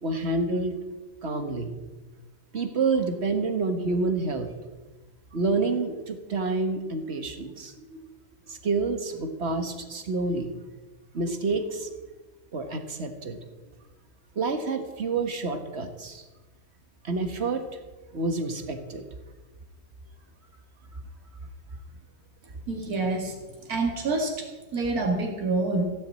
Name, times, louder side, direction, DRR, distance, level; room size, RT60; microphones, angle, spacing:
voice 1, 0.0-0.7 1.2-1.7 2.5-4.5 5.3-8.1 8.5-10.5 11.1-11.9 12.5-13.4 14.3-16.2 17.0-17.6 18.1-19.0, right 3 dB, 45° right, 7 dB, 1.8 m, -28 dB
voice 2, 22.7-24.5 24.7-25.8, right 3 dB, 70° right, 1 dB, 2.7 m, -27 dB
16.5 x 7.5 x 8.8 m, 1.2 s
omnidirectional pair, 1.6 m